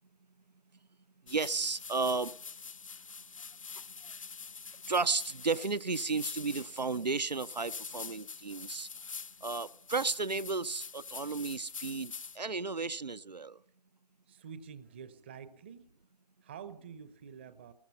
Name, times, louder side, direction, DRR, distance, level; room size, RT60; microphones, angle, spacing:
sound 1, 1.3-12.4, left 5 dB, 50° left, 0.8 m, -45 dB
voice 1, 1.3-2.4 4.9-8.9 9.4-13.6, right 4 dB, 80° right, 0.7 m, -33 dB
voice 2, 14.3-15.9 16.4-17.7, right 7 dB, 15° right, 0.7 m, -48 dB
25.5 x 21.0 x 5.5 m
figure-of-eight pair, 150°, 21 cm